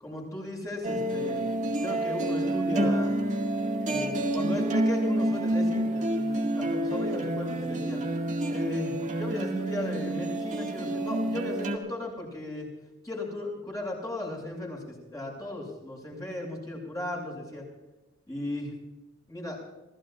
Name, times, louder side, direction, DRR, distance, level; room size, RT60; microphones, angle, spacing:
voice 1, 0.0-3.1 3.8-8.0 8.5-12.7 13.0-17.6 18.3-18.7 19.3-19.6, left 1 dB, 15° left, -1 dB, 7.0 m, -36 dB
sound 1, 0.8-11.8, right 1 dB, 35° right, 2.1 m, -28 dB
27.5 x 17.0 x 2.5 m, 1.1 s
head